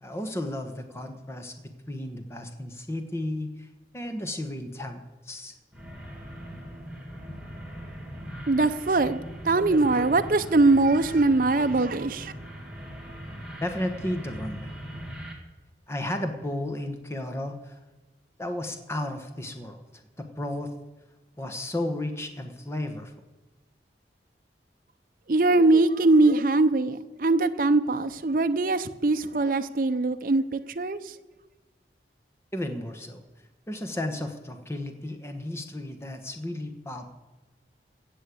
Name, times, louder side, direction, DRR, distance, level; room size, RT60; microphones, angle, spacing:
voice 1, 0.0-3.7 3.9-5.5 13.6-14.7 15.9-17.8 18.4-20.7 21.4-23.1 32.5-33.2 33.7-37.1, left 1 dB, 15° left, 6 dB, 1.2 m, -33 dB
sound 1, 5.7-15.3, equal, 5° right, 1.9 m, -40 dB
voice 2, 8.5-9.2 9.4-12.3 25.3-31.1, right 2 dB, 50° right, 8 dB, 0.6 m, -22 dB
16.0 x 6.5 x 8.5 m, 1.1 s
head